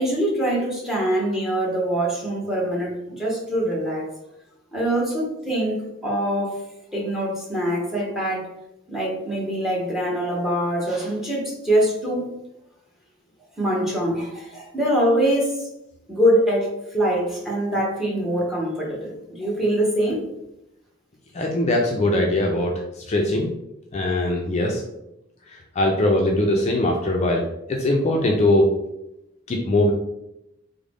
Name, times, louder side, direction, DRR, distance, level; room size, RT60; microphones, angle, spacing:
voice 1, 0.0-4.1 4.7-6.6 6.9-8.5 8.9-12.2 13.6-15.7 16.1-20.2, right 1 dB, ahead, -3 dB, 0.9 m, -23 dB
voice 2, 21.3-23.5 23.9-24.8 25.5-28.7 29.5-29.9, left 1 dB, 35° left, 0 dB, 0.4 m, -21 dB
3.7 x 2.0 x 3.4 m, 0.86 s
head